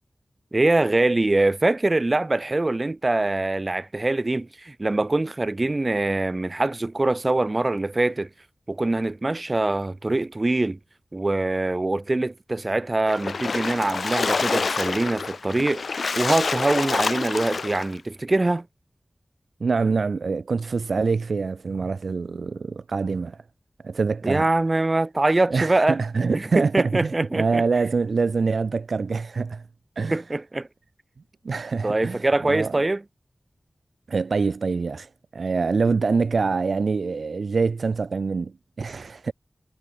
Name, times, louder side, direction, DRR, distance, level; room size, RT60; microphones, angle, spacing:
voice 1, 0.5-8.3 8.7-10.8 11.1-15.8 16.2-18.7 24.2-26.0 26.3-27.6 30.1-30.7 31.8-33.0, right 2 dB, 40° right, 4.3 m, -23 dB
Splash splatter, 13.1-17.9, left 4 dB, 90° left, 1.7 m, -27 dB
voice 2, 19.6-23.4 23.8-24.5 25.5-29.6 30.0-30.2 31.4-32.8 34.1-39.3, right 4 dB, 90° right, 0.9 m, -25 dB
wide cardioid pair, 65°, 0 cm